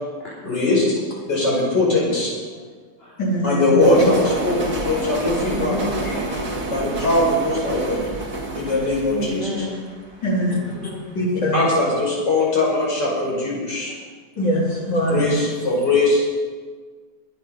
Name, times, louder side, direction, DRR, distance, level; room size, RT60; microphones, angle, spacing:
voice 1, 0.4-0.8 1.3-2.3 3.4-5.8 6.7-8.0 8.5-9.4 10.8-11.0 11.5-13.9 15.1-16.2, left 2 dB, 70° left, -4 dB, 6.1 m, -20 dB
voice 2, 3.2-3.8 10.2-10.6 11.1-11.6 14.4-15.3, equal, 90° left, -4 dB, 4.4 m, -22 dB
sound 1, 3.8-10.8, right 2 dB, 55° right, 2.7 m, -28 dB
voice 3, 5.5-6.5 9.1-9.9 13.9-14.0, left 1 dB, 30° left, -9 dB, 4.5 m, -30 dB
22.0 x 9.6 x 5.4 m, 1.5 s
omnidirectional pair, 1.9 m